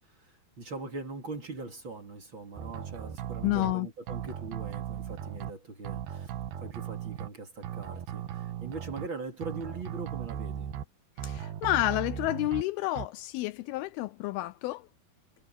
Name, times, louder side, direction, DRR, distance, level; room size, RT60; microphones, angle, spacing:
voice 1, 0.1-6.3 6.6-10.7, right 3 dB, 35° right, 2.9 m, -41 dB
sound 1, 2.6-3.7 4.1-5.5 5.8-7.3 7.6-9.1 9.4-10.8 11.2-12.6 13.0-13.1, right 10 dB, 70° right, 3.1 m, -37 dB
voice 2, 3.4-3.9 11.2-14.9, left 17 dB, 80° left, 2.3 m, -30 dB
omnidirectional pair, 4.6 m